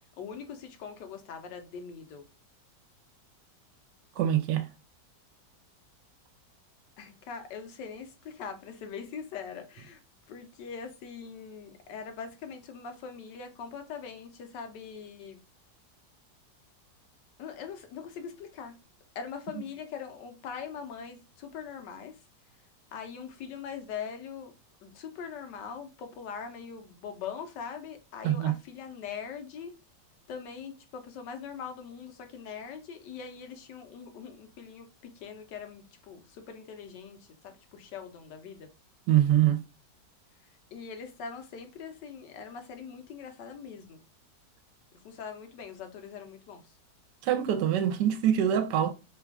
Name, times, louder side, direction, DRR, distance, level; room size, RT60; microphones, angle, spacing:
voice 1, 0.2-2.2 7.0-10.0 10.3-15.4 17.4-18.8 19.1-22.2 22.9-24.5 24.8-29.7 30.3-38.7 40.4-44.0 44.9-46.8, left 6 dB, 80° left, 1.3 m, -42 dB
voice 2, 4.2-4.7 28.2-28.5 39.1-39.6 47.2-48.9, right 11 dB, 80° right, 1.2 m, -24 dB
3.3 x 2.3 x 3.4 m
omnidirectional pair, 1.9 m